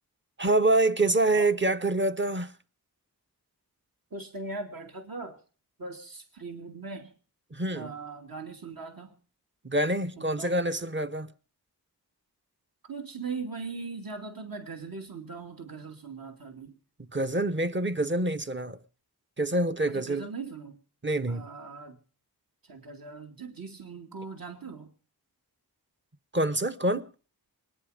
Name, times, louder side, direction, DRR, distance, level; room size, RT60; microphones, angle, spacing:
voice 1, 0.4-2.5 7.5-7.9 9.6-11.3 17.1-18.8 19.4-20.3 21.0-21.5 26.3-27.1, right 2 dB, 30° right, 1.0 m, -26 dB
voice 2, 4.1-5.4 5.8-7.1 7.7-9.2 10.2-10.6 12.8-16.8 19.9-20.8 21.3-22.0 22.6-24.9, right 4 dB, 60° right, 2.7 m, -40 dB
25.0 x 9.8 x 5.1 m
wide cardioid pair, 60°, 39 cm